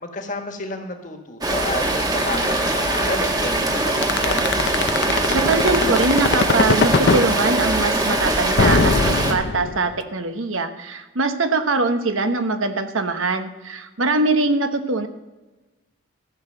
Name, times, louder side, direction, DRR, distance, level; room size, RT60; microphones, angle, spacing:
voice 1, 0.0-4.4, left 2 dB, 40° left, 4 dB, 1.5 m, -30 dB
Rain, 1.4-9.3, right 2 dB, 20° right, 1.2 m, -22 dB
sound 1, 4.0-7.2 8.6-10.0, left 4 dB, 55° left, 0.6 m, -19 dB
voice 2, 5.3-15.1, right 3 dB, 80° right, 8 dB, 1.1 m, -22 dB
14.5 x 6.4 x 7.7 m, 1.2 s
head